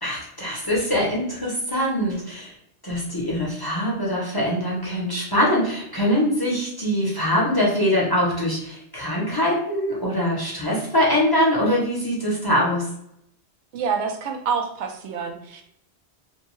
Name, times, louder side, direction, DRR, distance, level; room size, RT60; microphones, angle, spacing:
voice 1, 0.0-2.5 2.8-12.9, equal, 25° left, -4 dB, 0.6 m, -23 dB
voice 2, 13.7-15.6, right 6 dB, 90° right, 3 dB, 0.9 m, -27 dB
2.7 x 2.2 x 3.0 m, 0.75 s
omnidirectional pair, 1.1 m